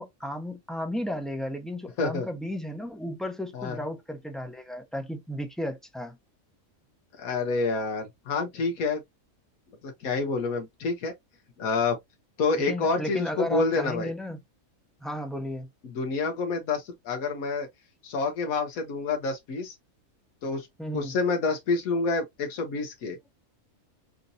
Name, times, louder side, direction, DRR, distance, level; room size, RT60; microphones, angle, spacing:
voice 1, 0.0-6.2 12.6-14.4 15.0-15.7 20.8-21.2, equal, ahead, 0.6 m, -34 dB
voice 2, 7.2-9.0 9.8-11.1 11.6-12.0 12.4-14.1 15.8-17.7 18.0-19.7 20.4-20.7 20.9-23.2, left 4 dB, 85° left, 1.3 m, -28 dB
5.8 x 2.6 x 2.6 m
omnidirectional pair, 1.5 m